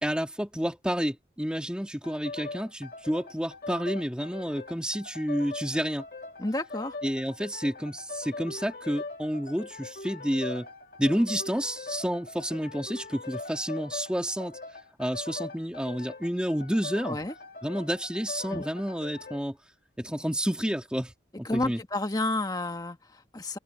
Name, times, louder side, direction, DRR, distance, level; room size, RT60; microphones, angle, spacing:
voice 1, 0.0-6.1 7.0-10.7 11.0-14.6 15.0-17.2 17.6-19.6 20.0-21.1 21.4-21.8, equal, 5° right, 2.6 m, -30 dB
sound 1, 2.0-19.5, left 3 dB, 55° left, 2.5 m, -41 dB
voice 2, 6.4-7.0 17.0-17.3 18.5-18.7 21.4-23.6, left 2 dB, 20° left, 1.5 m, -31 dB
open air
head